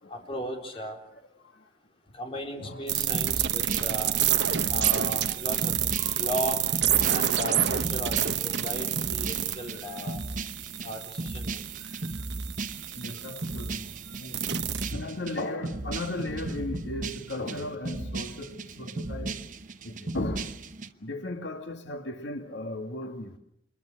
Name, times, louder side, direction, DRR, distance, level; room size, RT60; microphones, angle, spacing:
voice 1, 0.1-1.0 2.1-4.2 4.7-6.6 7.1-10.2 10.8-11.7, equal, 30° left, 3.9 m, -36 dB
voice 2, 2.6-2.9 4.3-4.5 6.0-6.3 8.6-8.7 9.5-10.0 11.7-12.2 12.9-14.5 14.9-19.5 19.8-20.6 21.0-23.4, left 2 dB, 85° left, 1.8 m, -37 dB
sound 1, 2.9-14.9, right 11 dB, 75° right, 1.1 m, -29 dB
sound 2, 3.1-20.9, right 2 dB, 45° right, 1.0 m, -36 dB
26.5 x 22.0 x 6.4 m
head